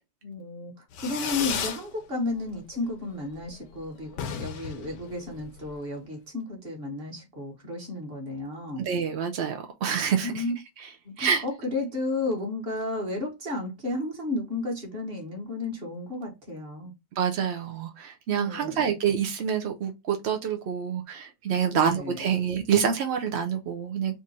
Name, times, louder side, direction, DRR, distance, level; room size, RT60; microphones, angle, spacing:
voice 1, 0.2-8.9 10.2-10.5 11.0-16.9 18.3-18.9 21.7-22.3, left 2 dB, 35° right, 1.5 m, -33 dB
Fireworks, 0.9-1.9 2.2-2.8 3.0-3.1 3.4-3.5 3.7-3.8 4.1-5.7, left 7 dB, 85° left, 1.4 m, -34 dB
voice 2, 8.8-10.4 10.8-10.9 11.2-11.4 17.2-24.2, right 7 dB, 70° right, 0.6 m, -27 dB
3.6 x 2.6 x 4.1 m
omnidirectional pair, 1.8 m